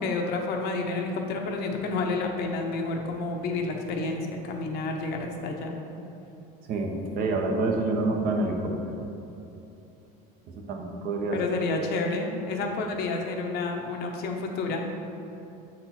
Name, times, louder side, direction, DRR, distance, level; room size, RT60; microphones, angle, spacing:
voice 1, 0.0-5.8 11.3-14.9, left 3 dB, 55° left, 2 dB, 0.9 m, -30 dB
voice 2, 6.7-9.0 10.5-11.4 12.5-12.6, right 2 dB, 50° right, 2 dB, 0.9 m, -28 dB
7.9 x 4.3 x 4.3 m, 2.9 s
cardioid pair, 140°, 19 cm